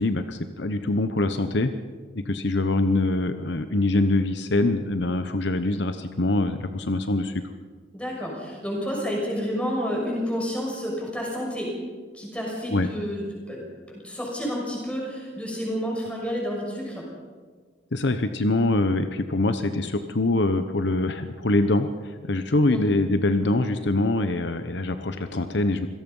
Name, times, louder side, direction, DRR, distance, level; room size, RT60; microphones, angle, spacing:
voice 1, 0.0-1.7 2.1-7.3 12.7-12.9 17.9-25.9, left 2 dB, 65° left, 9 dB, 1.0 m, -24 dB
voice 2, 7.9-11.7 12.1-13.7 13.9-17.0 22.7-22.8, equal, 5° left, -2 dB, 6.4 m, -30 dB
26.5 x 18.0 x 5.5 m, 1.5 s
head